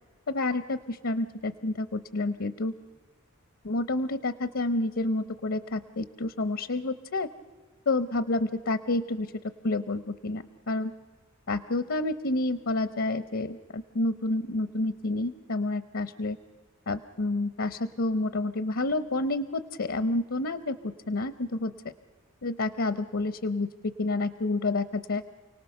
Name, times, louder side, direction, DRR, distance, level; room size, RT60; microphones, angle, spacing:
voice 1, 0.3-2.7 3.6-7.3 7.9-9.3 9.6-10.9 11.5-16.4 16.9-21.7 22.4-25.2, left 2 dB, 70° left, 13 dB, 0.8 m, -29 dB
29.5 x 18.5 x 6.7 m, 1.4 s
head